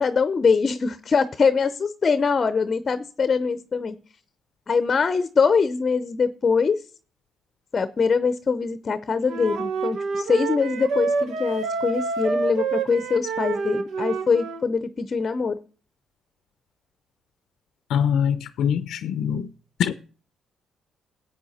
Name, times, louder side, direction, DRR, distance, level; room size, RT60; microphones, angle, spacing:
voice 1, 0.0-4.0 4.7-6.8 7.7-15.6, left 5 dB, 40° left, 0.6 m, -23 dB
Wind instrument woodwind instrument, 9.3-14.6, right 4 dB, 75° right, 1.1 m, -27 dB
voice 2, 17.9-19.5 19.8-19.9, left 8 dB, 80° left, 0.6 m, -23 dB
13.5 x 8.6 x 4.2 m
cardioid pair, 90°, 0 cm